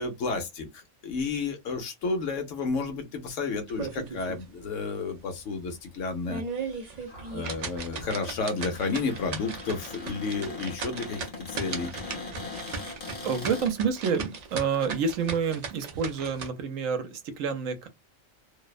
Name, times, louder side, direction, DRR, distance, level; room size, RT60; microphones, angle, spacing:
voice 1, 0.0-6.4 7.3-11.2 11.5-11.9, left 4 dB, 75° left, 1.0 m, -31 dB
sound 1, 3.7-4.4 4.8-4.9 5.4-5.5 6.1-16.5, right 5 dB, 60° right, 0.4 m, -37 dB
Cupboard open or close, 7.0-13.7, left 3 dB, 35° left, 0.7 m, -41 dB
voice 2, 12.6-17.9, right 6 dB, 85° right, 1.0 m, -29 dB
2.6 x 2.0 x 2.3 m
omnidirectional pair, 1.3 m